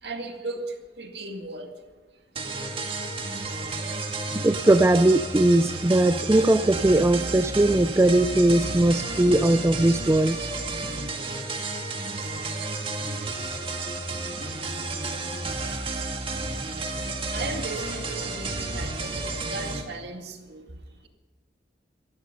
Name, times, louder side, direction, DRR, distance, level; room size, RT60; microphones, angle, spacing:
voice 1, 0.0-2.0 17.3-21.1, right 2 dB, 70° right, 3 dB, 2.2 m, -36 dB
sound 1, 2.3-19.8, right 3 dB, 30° right, 1.8 m, -32 dB
voice 2, 4.4-10.4, right 1 dB, 15° right, 11 dB, 0.4 m, -20 dB
17.0 x 13.5 x 5.4 m, 1.3 s
head